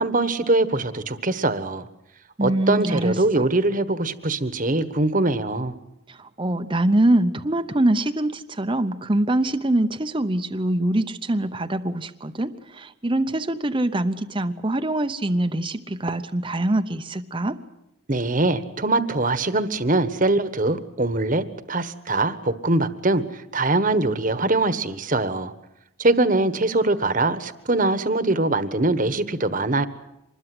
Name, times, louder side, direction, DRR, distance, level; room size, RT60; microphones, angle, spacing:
voice 1, 0.0-1.9 2.4-5.7 18.1-25.5 26.0-29.9, right 2 dB, 40° right, 12 dB, 1.3 m, -22 dB
voice 2, 2.4-3.5 6.1-17.6, right 1 dB, 25° right, 8 dB, 0.8 m, -24 dB
25.5 x 21.0 x 7.8 m, 0.88 s
head